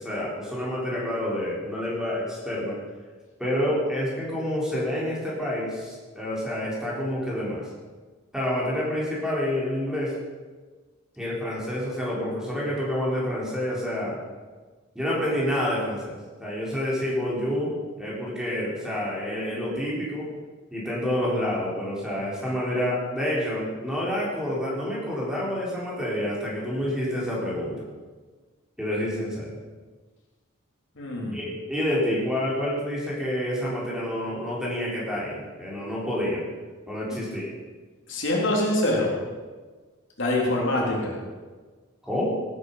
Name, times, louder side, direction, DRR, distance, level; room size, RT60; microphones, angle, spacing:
voice 1, 0.0-2.8 3.4-7.6 8.3-10.1 11.2-14.2 14.9-17.7 18.0-20.3 20.7-27.8 28.8-29.5 31.3-36.4 36.9-37.5 42.0-42.2, left 1 dB, 5° right, -6 dB, 4.0 m, -28 dB
voice 2, 31.0-31.4 38.1-39.1 40.2-41.2, left 1 dB, 60° left, -2 dB, 3.4 m, -24 dB
17.5 x 9.4 x 5.6 m, 1.4 s
head